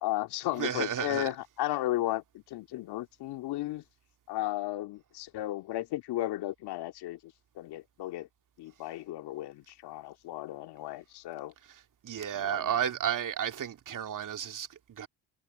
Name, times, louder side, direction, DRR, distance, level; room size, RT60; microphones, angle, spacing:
voice 1, 0.0-3.8 4.3-8.3 8.6-11.5 12.3-12.7, left 15 dB, 65° left, 2.3 m, -34 dB
voice 2, 0.6-1.3 12.0-15.1, right 9 dB, 45° right, 2.3 m, -32 dB
hypercardioid pair, 55°, 42 cm